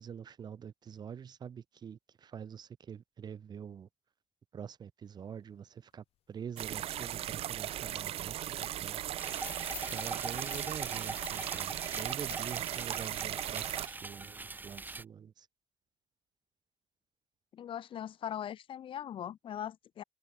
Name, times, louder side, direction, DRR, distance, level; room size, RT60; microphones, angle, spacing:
voice 1, 0.0-3.9 4.5-9.0 9.8-15.3, right 7 dB, 45° right, 5.6 m, -45 dB
sound 1, 6.6-13.9, right 12 dB, 85° right, 1.8 m, -37 dB
sound 2, 7.3-7.4 7.7-7.9 8.3-12.4, left 12 dB, 85° left, 4.1 m, -50 dB
sound 3, 9.2-15.0, right 3 dB, 20° right, 3.4 m, -43 dB
voice 2, 17.5-20.0, left 10 dB, 60° left, 5.7 m, -40 dB
cardioid pair, 160°, 10 cm